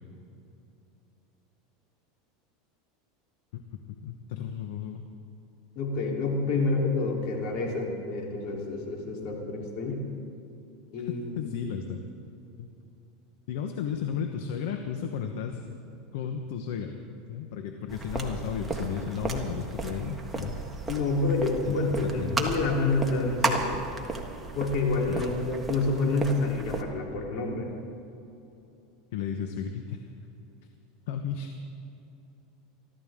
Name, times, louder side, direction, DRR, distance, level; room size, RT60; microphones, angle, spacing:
voice 1, 3.9-5.0 11.4-12.0 12.6-12.7 13.5-15.6 16.1-16.9 17.3-20.6 21.6-22.4 25.1-25.2 29.1-30.1 31.1-31.5, left 7 dB, 75° left, 5 dB, 1.0 m, -34 dB
voice 2, 5.8-10.0 10.9-11.5 20.9-23.8 24.5-27.7, left 3 dB, 60° left, -1 dB, 3.5 m, -28 dB
sound 1, 17.9-26.8, right 2 dB, 10° right, 1.6 m, -34 dB
23.5 x 13.5 x 3.7 m, 2.9 s
supercardioid pair, 135°, 0 cm